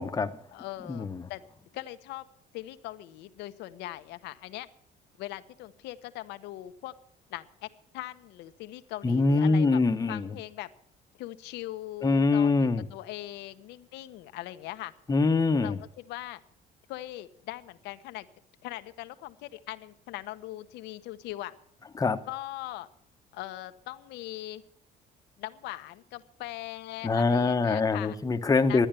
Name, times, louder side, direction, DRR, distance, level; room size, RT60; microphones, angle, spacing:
voice 1, 0.0-0.3 0.9-1.3 9.0-10.3 12.0-12.8 15.1-15.8 22.0-22.2 27.0-28.9, left 3 dB, 20° left, 7 dB, 0.9 m, -24 dB
voice 2, 0.5-1.4 1.7-2.3 2.5-4.7 5.2-6.9 7.3-7.7 7.9-9.8 10.1-10.7 11.2-14.9 15.6-16.4 16.9-18.3 18.6-21.5 22.3-22.9 23.3-24.6 25.4-28.2 28.7-28.8, left 16 dB, 90° left, 12 dB, 0.9 m, -40 dB
12.5 x 10.0 x 8.9 m, 0.69 s
cardioid pair, 110°, 17 cm